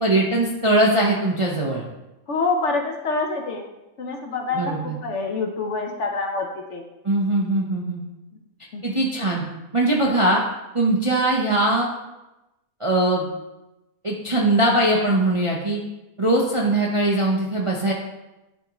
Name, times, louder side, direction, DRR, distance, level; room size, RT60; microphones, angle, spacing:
voice 1, 0.0-1.9 4.6-4.8 7.0-8.0 8.8-9.4 9.7-10.4 10.7-11.9 12.8-13.3 14.0-15.8 16.2-17.9, right 1 dB, 35° right, -2 dB, 0.5 m, -21 dB
voice 2, 2.3-3.7 4.0-6.8 8.7-8.8 16.6-16.7, left 3 dB, 60° left, 3 dB, 0.9 m, -26 dB
11.0 x 3.6 x 3.0 m, 0.98 s
omnidirectional pair, 1.6 m